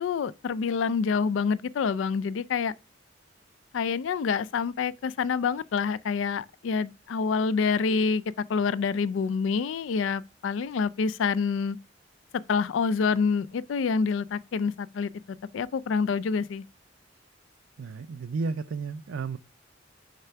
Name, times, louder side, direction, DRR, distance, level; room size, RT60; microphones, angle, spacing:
voice 1, 0.0-2.7 3.7-8.2 8.5-11.8 12.5-16.6, left 5 dB, 85° left, 0.4 m, -27 dB
voice 2, 17.8-19.4, right 4 dB, 90° right, 0.4 m, -32 dB
6.7 x 3.5 x 5.6 m
head